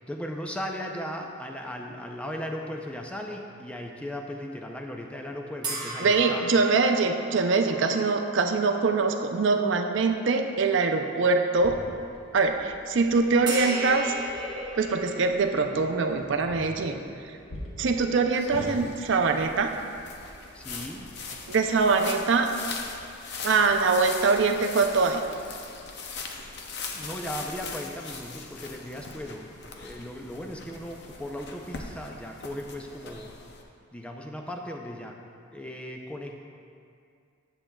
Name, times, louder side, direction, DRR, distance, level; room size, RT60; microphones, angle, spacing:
voice 1, 0.0-6.4 20.5-21.2 26.9-33.4 33.9-35.2 35.5-36.4, equal, 5° left, 2 dB, 0.4 m, -37 dB
sound 1, 5.6-9.2 9.7-9.9 13.5-19.9, right 2 dB, 20° right, 1.0 m, -38 dB
voice 2, 6.0-11.8 12.3-14.2 14.8-17.0 17.8-19.7 21.5-22.5 23.4-25.2, right 4 dB, 60° right, 5 dB, 0.4 m, -23 dB
sound 2, 11.5-18.7, equal, 75° left, 1.1 m, -45 dB
sound 3, 18.3-33.6, left 4 dB, 50° left, 0.6 m, -41 dB
9.8 x 7.2 x 2.3 m, 2.4 s
head